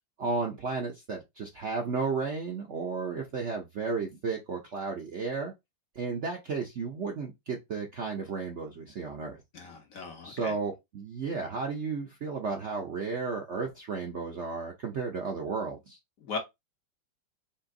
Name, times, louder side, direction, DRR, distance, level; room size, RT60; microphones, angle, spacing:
voice 1, 0.2-5.5 5.9-9.4 10.2-16.0, right 4 dB, 60° right, 0.8 m, -33 dB
voice 2, 9.5-10.5 16.2-16.4, left 4 dB, 55° left, 1.1 m, -38 dB
4.3 x 3.0 x 3.7 m
omnidirectional pair, 2.1 m